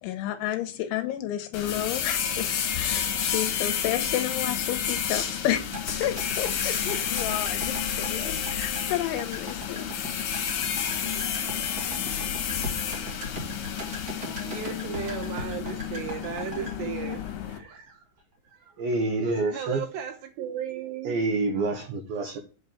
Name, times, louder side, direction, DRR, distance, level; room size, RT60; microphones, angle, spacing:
voice 1, 0.0-5.6 6.0-9.9, left 12 dB, 80° left, 2.9 m, -31 dB
sound 1, 1.5-17.6, left 8 dB, 60° left, 2.6 m, -30 dB
sound 2, 5.7-17.9 18.2-18.3, left 1 dB, 50° right, 1.1 m, -39 dB
voice 2, 14.2-18.1 18.5-18.8 19.5-21.2, right 9 dB, 70° right, 3.0 m, -36 dB
voice 3, 18.8-19.8 21.0-22.4, right 3 dB, 90° right, 2.0 m, -27 dB
8.4 x 6.7 x 7.1 m
omnidirectional pair, 5.8 m